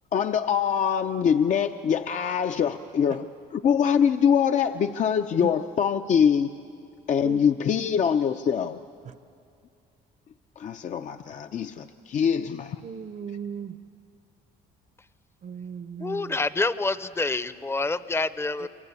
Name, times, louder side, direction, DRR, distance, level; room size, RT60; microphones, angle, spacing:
voice 1, 0.1-3.3 3.5-6.5 7.1-8.8 10.6-12.8, left 7 dB, 45° left, 7 dB, 0.6 m, -24 dB
voice 2, 12.8-13.8 15.4-16.4 18.6-18.7, right 7 dB, 45° right, 12 dB, 0.8 m, -37 dB
voice 3, 16.0-18.7, left 3 dB, 15° left, 15 dB, 0.7 m, -27 dB
28.5 x 23.0 x 8.3 m, 2.4 s
cardioid pair, 110°, 17 cm